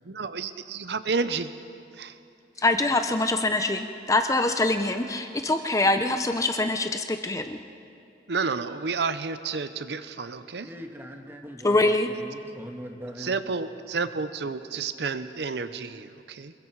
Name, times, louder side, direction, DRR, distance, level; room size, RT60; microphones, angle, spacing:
voice 1, 0.0-1.5 1.9-2.2 8.3-10.7 13.2-16.5, right 4 dB, 65° right, 12 dB, 0.7 m, -30 dB
voice 2, 2.6-7.6 11.6-12.1, left 2 dB, 20° left, 7 dB, 0.6 m, -24 dB
voice 3, 10.6-13.3, equal, 10° right, 3 dB, 1.5 m, -41 dB
26.5 x 22.0 x 4.7 m, 2.6 s
head